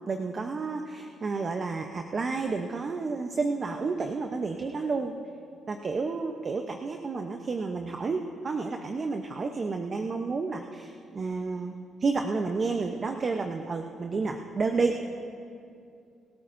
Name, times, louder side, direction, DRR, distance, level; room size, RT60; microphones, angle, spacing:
voice 1, 0.1-5.1 5.7-15.0, right 4 dB, 40° right, 4 dB, 0.8 m, -30 dB
28.0 x 13.5 x 2.6 m, 2.4 s
cardioid pair, 90°, 0 cm